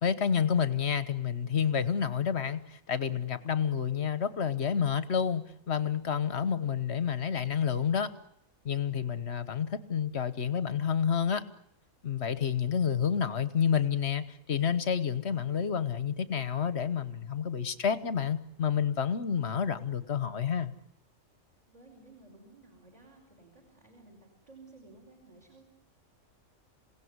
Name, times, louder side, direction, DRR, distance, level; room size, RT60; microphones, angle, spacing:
voice 1, 0.0-8.1 8.6-11.4 12.0-20.7, left 7 dB, 50° left, 13 dB, 1.4 m, -29 dB
voice 2, 21.7-25.6, right 3 dB, 25° right, 0 dB, 5.0 m, -55 dB
27.5 x 17.5 x 9.6 m, 0.76 s
omnidirectional pair, 1.5 m